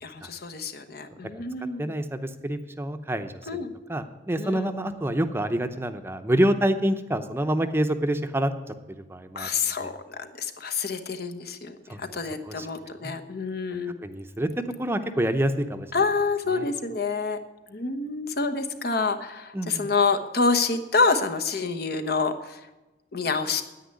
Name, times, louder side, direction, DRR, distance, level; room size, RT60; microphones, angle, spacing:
voice 1, 0.0-1.9 3.5-3.7 4.4-4.7 9.3-9.9 10.2-14.0 15.9-17.4 17.7-22.6 23.1-23.6, left 4 dB, 60° left, 9 dB, 1.1 m, -27 dB
voice 2, 1.8-8.5 9.1-9.5 9.8-9.9 11.9-12.0 12.4-12.7 13.0-13.1 14.0-14.5 14.8-15.9 16.5-16.7 19.5-19.9, right 1 dB, 15° right, 9 dB, 0.7 m, -27 dB
10.0 x 8.9 x 9.6 m, 1.1 s
head